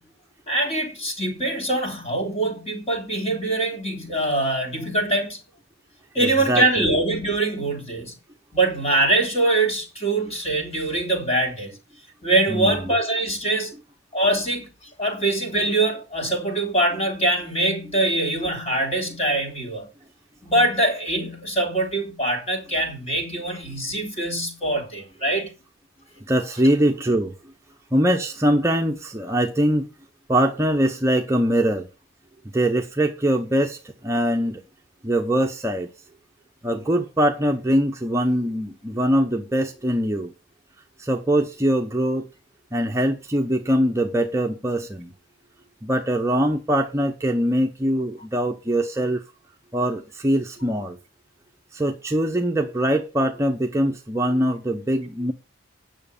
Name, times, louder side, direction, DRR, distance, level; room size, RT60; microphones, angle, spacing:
voice 1, 0.5-5.4 6.2-8.1 8.5-11.7 12.2-13.7 14.1-14.6 15.0-19.9 20.4-25.5, right 2 dB, 30° left, 3.5 m, -23 dB
voice 2, 6.2-6.9 12.5-12.8 26.2-27.3 27.9-29.9 30.3-31.9 32.5-34.6 35.0-35.9 36.6-40.3 41.0-42.3 42.7-45.1 45.8-49.2 49.7-51.0 51.7-55.3, right 1 dB, 15° right, 0.7 m, -22 dB
9.3 x 6.4 x 6.9 m
head